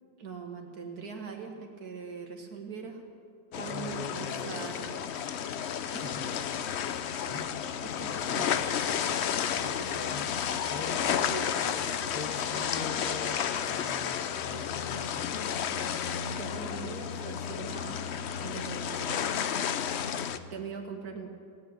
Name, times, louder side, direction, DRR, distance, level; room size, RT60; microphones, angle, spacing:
voice 1, 0.2-3.0 3.5-4.8 5.9-6.1 7.2-7.5 7.8-8.6 16.3-18.1 18.4-19.2 20.0-20.2 20.5-21.3, right 5 dB, 60° right, 3 dB, 2.0 m, -42 dB
sound 1, 3.5-20.4, left 8 dB, 70° left, 0.6 m, -32 dB
voice 2, 3.7-5.0 5.9-6.5 7.3-8.5 9.0-15.4, left 3 dB, 30° left, 7 dB, 0.7 m, -43 dB
19.0 x 8.5 x 9.0 m, 2.2 s
omnidirectional pair, 1.9 m